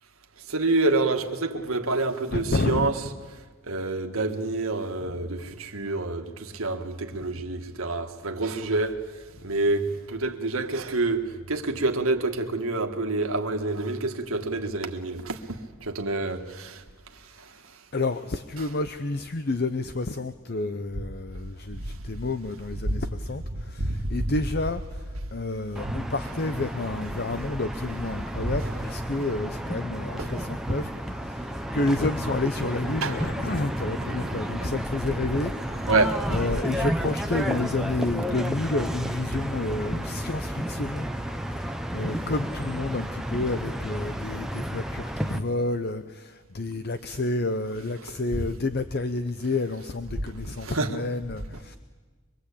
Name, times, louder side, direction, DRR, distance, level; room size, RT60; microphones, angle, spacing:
voice 1, 0.5-2.9 3.7-9.1 9.4-15.4 15.8-16.8 17.4-17.5 22.9-23.0 23.8-24.1 28.5-28.6 30.2-30.3 33.0-33.1 34.0-34.6 35.9-36.4 50.6-50.9, right 2 dB, 80° right, 1.8 m, -27 dB
voice 2, 2.3-3.2 5.0-5.5 7.2-7.5 9.4-9.6 17.9-35.9 36.3-41.2 41.6-51.8, left 2 dB, 50° left, 0.7 m, -30 dB
sound 1, 25.8-45.4, equal, ahead, 1.0 m, -32 dB
24.5 x 22.5 x 8.6 m
head